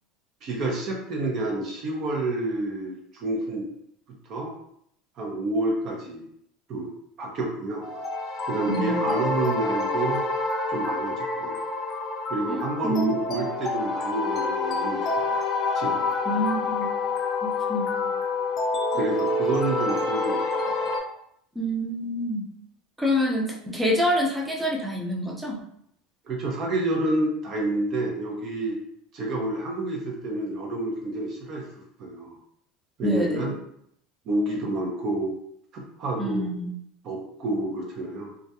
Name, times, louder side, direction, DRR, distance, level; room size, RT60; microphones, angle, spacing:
voice 1, 0.4-3.7 4.3-4.5 5.2-6.3 6.7-6.9 7.2-7.9 8.5-10.2 10.7-11.6 12.3-15.3 15.7-16.1 18.9-20.7 26.3-28.8 29.1-31.7 32.0-32.4 33.0-33.5 34.3-35.3 35.7-36.5 37.0-38.3, right 2 dB, 50° right, -1 dB, 0.6 m, -29 dB
sound 1, 7.8-21.0, left 3 dB, 40° left, 0.5 m, -27 dB
voice 2, 8.7-9.0 12.5-13.4 16.3-16.9 17.4-18.1 18.9-19.1 21.6-22.4 23.0-25.6 33.0-33.5 36.2-36.7, equal, 5° right, -1 dB, 0.6 m, -27 dB
2.3 x 2.1 x 2.7 m, 0.70 s
supercardioid pair, 110°, 0 cm